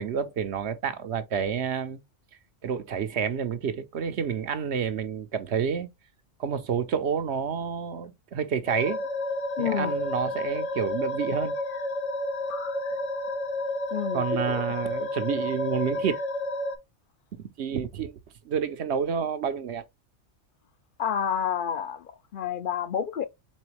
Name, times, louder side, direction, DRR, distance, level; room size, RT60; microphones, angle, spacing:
voice 1, 0.0-2.0 2.6-5.9 6.4-9.0 9.6-11.6 14.1-16.2 17.4-18.2 18.4-19.8, right 7 dB, 65° right, 0.9 m, -29 dB
sound 1, 8.7-16.8, left 1 dB, 80° left, 1.4 m, -31 dB
voice 2, 9.6-9.9 13.9-14.8 21.0-23.3, left 8 dB, 50° left, 0.7 m, -29 dB
4.3 x 4.2 x 3.0 m
omnidirectional pair, 1.3 m